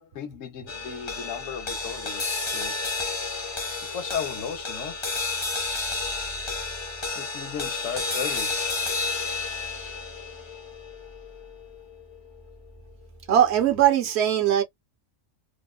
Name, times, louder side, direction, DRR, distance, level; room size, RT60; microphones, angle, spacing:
voice 1, 0.0-2.8 3.9-5.0 7.1-8.6, left 7 dB, 75° left, 1.0 m, -35 dB
sound 1, 0.7-13.2, left 3 dB, 35° left, 0.5 m, -31 dB
voice 2, 13.3-14.6, right 10 dB, 65° right, 0.8 m, -20 dB
2.8 x 2.0 x 2.3 m
omnidirectional pair, 1.3 m